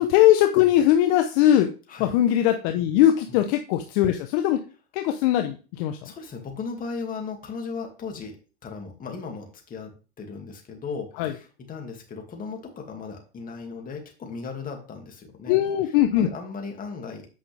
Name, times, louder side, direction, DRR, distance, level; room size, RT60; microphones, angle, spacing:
voice 1, 0.0-1.7 2.0-4.6 4.9-6.0 11.2-11.3 15.5-16.3, left 12 dB, 50° left, 6 dB, 0.9 m, -20 dB
voice 2, 6.0-8.4 8.6-15.6 15.8-17.3, left 5 dB, 25° left, 2 dB, 2.3 m, -37 dB
8.6 x 5.5 x 3.4 m, 0.35 s
hypercardioid pair, 115°, 34 cm